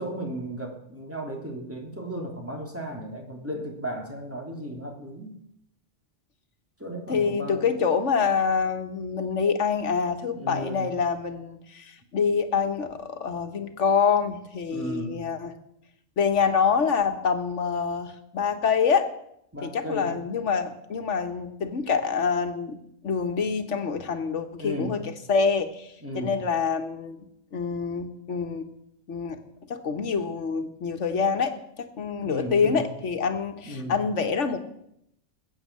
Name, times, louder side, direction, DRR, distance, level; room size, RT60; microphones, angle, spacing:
voice 1, 0.0-5.4 6.8-7.8 10.3-10.9 14.7-15.2 19.5-20.2 24.6-25.0 26.0-26.4 32.2-32.8 33.7-34.0, equal, 10° right, 0 dB, 3.3 m, -35 dB
voice 2, 7.1-15.5 16.2-19.1 19.6-22.8 23.0-27.3 27.5-28.7 29.1-29.4 29.7-34.6, left 5 dB, 90° left, 7 dB, 1.7 m, -26 dB
21.0 x 8.8 x 7.6 m, 0.74 s
omnidirectional pair, 1.2 m